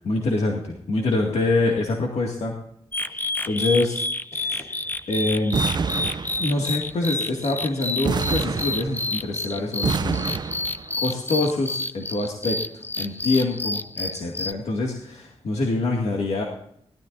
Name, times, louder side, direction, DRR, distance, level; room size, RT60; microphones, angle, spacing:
voice 1, 0.0-2.5 3.1-4.0 4.3-5.6 6.4-10.3 11.0-16.4, left 2 dB, 85° left, -1 dB, 2.2 m, -25 dB
sound 1, 2.9-14.5, left 2 dB, 20° left, 0.5 m, -29 dB
sound 2, 5.5-6.8 8.0-9.3 9.8-11.0, right 5 dB, 40° right, 0.5 m, -27 dB
19.5 x 13.0 x 2.7 m, 0.69 s
wide cardioid pair, 165°, 11 cm